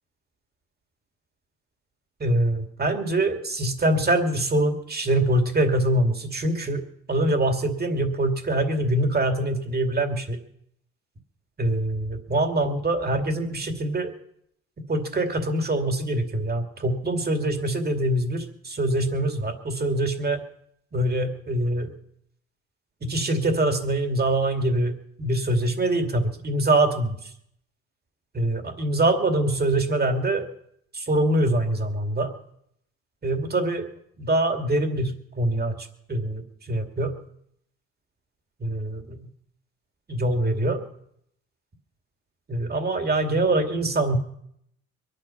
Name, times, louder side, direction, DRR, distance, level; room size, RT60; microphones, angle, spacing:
voice 1, 2.2-6.8 7.1-10.4 11.6-14.1 14.9-20.4 20.9-21.9 23.0-27.3 28.3-30.5 30.9-32.3 33.2-33.9 34.2-37.1 38.6-39.3 40.1-40.8 42.5-44.2, right 1 dB, 30° right, 5 dB, 2.5 m, -24 dB
23.0 x 11.0 x 5.8 m, 0.72 s
cardioid pair, 90°, 30 cm